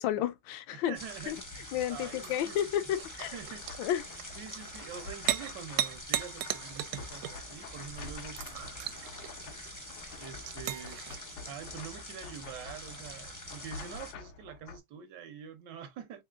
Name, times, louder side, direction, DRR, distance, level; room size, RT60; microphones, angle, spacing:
voice 1, 0.0-1.0 1.3-1.4 1.7-3.4 3.8-4.0, left 11 dB, 75° left, 1.3 m, -31 dB
voice 2, 0.7-2.6 3.3-3.7 4.3-9.5 10.2-11.0 11.5-16.2, right 8 dB, 65° right, 1.3 m, -46 dB
sound 1, 0.9-14.1, left 1 dB, 15° left, 0.6 m, -46 dB
sound 2, 1.4-14.8, left 5 dB, 90° left, 1.7 m, -49 dB
sound 3, 2.2-11.2, right 12 dB, 80° right, 1.4 m, -37 dB
3.8 x 3.7 x 2.3 m
omnidirectional pair, 2.3 m